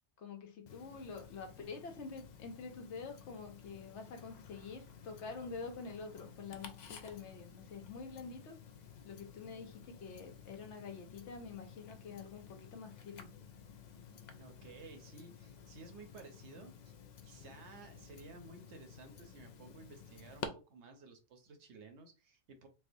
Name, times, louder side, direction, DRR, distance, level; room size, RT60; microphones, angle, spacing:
voice 1, 0.2-8.6 9.0-13.3, left 4 dB, 70° left, 0.9 m, -47 dB
Tick-tock, 0.7-20.5, left 6 dB, 85° left, 0.3 m, -53 dB
voice 2, 14.4-17.0 17.2-22.7, right 3 dB, 65° right, 0.9 m, -55 dB
4.4 x 2.1 x 2.5 m
omnidirectional pair, 1.3 m